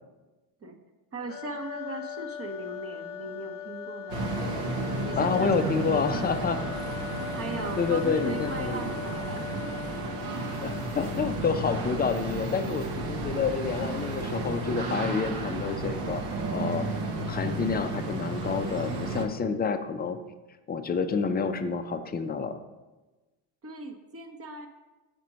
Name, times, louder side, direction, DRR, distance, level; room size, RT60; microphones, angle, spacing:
voice 1, 1.1-4.2 5.0-6.7 7.3-9.5 23.6-24.7, right 3 dB, 30° right, 6 dB, 0.9 m, -39 dB
sound 1, 1.3-11.2, left 9 dB, 45° left, 0.7 m, -40 dB
sound 2, 4.1-19.2, right 2 dB, 80° right, 1.1 m, -32 dB
voice 2, 5.2-6.6 7.8-8.8 10.6-16.2 16.5-16.9 17.2-20.2 20.7-22.6, left 5 dB, 20° left, 8 dB, 0.4 m, -28 dB
5.2 x 4.3 x 6.1 m, 1.1 s
cardioid pair, 100°, 50 cm